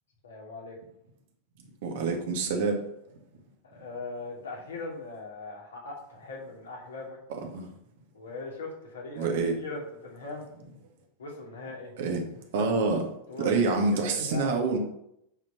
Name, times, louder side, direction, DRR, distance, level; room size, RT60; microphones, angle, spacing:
voice 1, 0.2-0.8 3.6-7.2 8.1-9.3 9.6-10.5 11.2-11.9 13.3-14.5, left 3 dB, 65° left, -2 dB, 3.0 m, -40 dB
voice 2, 1.8-2.8 7.5-7.7 9.1-9.5 12.0-12.2 12.5-13.1 13.4-14.8, right 4 dB, 55° right, 3 dB, 1.9 m, -26 dB
9.1 x 5.3 x 5.9 m, 0.77 s
figure-of-eight pair, 90°, 0 cm